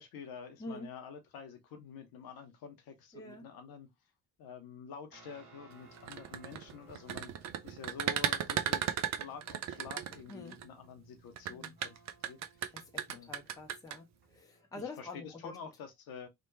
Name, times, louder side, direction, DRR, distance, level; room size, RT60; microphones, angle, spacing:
voice 1, 0.0-3.9 4.4-7.3 7.6-12.0 12.3-12.4 13.1-13.3 14.7-16.3, left 6 dB, 50° left, 0.7 m, -48 dB
voice 2, 3.1-3.5 10.3-10.6 11.5-11.8 12.7-15.6, left 3 dB, 10° left, 0.6 m, -46 dB
sound 1, 5.1-14.8, right 3 dB, 55° right, 1.4 m, -61 dB
sound 2, 6.0-10.6 11.4-14.0, right 10 dB, 40° right, 0.4 m, -35 dB
2.9 x 2.1 x 2.6 m
figure-of-eight pair, 40°, 47 cm